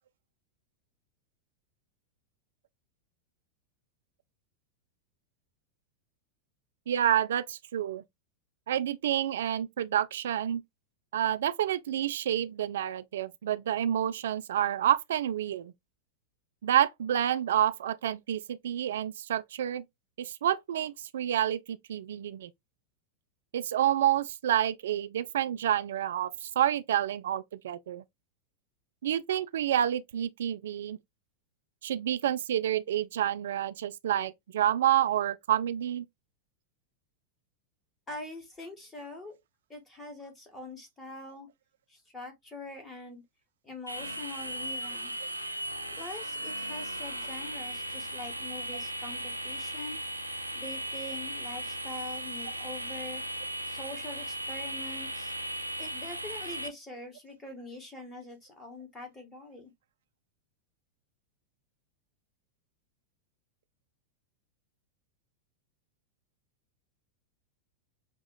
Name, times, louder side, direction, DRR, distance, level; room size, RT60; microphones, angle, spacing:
voice 1, 6.9-8.0 8.7-10.6 11.1-15.7 16.6-19.8 20.2-22.5 23.5-28.0 29.0-31.0 31.8-36.1, right 11 dB, 60° right, 0.4 m, -29 dB
voice 2, 38.1-39.4 39.7-41.5 41.9-43.2 43.6-45.1 46.0-50.0 50.5-53.2 53.7-55.3 55.8-59.7, left 2 dB, 15° left, 1.8 m, -44 dB
sound 1, 43.9-56.7, right 1 dB, 90° left, 0.6 m, -37 dB
6.6 x 2.4 x 2.4 m
figure-of-eight pair, 90°, 0 cm